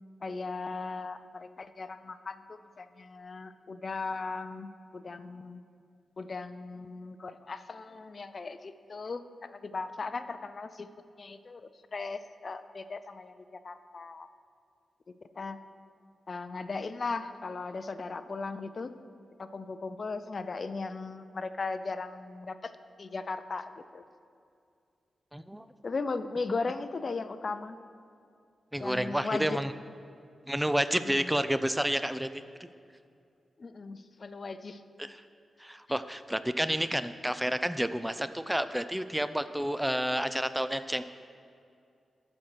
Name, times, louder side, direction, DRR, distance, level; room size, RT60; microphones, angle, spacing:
voice 1, 0.2-5.6 6.2-10.9 11.2-14.3 15.1-15.6 16.3-19.0 19.4-22.7 23.0-24.0 25.8-27.8 28.8-29.6 31.0-31.4 33.6-34.8, left 4 dB, 50° left, 11 dB, 0.4 m, -37 dB
voice 2, 25.3-25.7 28.7-29.7 30.5-32.3 35.0-35.1 35.6-41.0, equal, 5° right, 11 dB, 0.4 m, -30 dB
11.5 x 4.3 x 6.2 m, 2.4 s
cardioid pair, 50°, 0 cm